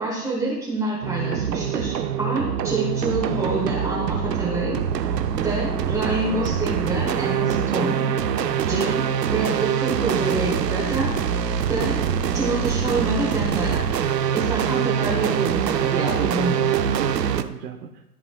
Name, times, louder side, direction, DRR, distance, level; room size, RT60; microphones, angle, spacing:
voice 1, 0.0-4.8 5.4-8.1 8.7-11.2 11.7-12.0 12.3-13.9 14.3-16.7, right 2 dB, 5° right, -6 dB, 1.3 m, -27 dB
sound 1, 1.0-17.4, right 8 dB, 90° right, 0.7 m, -24 dB
voice 2, 15.9-18.0, right 6 dB, 70° right, 1 dB, 1.0 m, -32 dB
13.5 x 5.0 x 2.3 m, 0.93 s
hypercardioid pair, 120°, 48 cm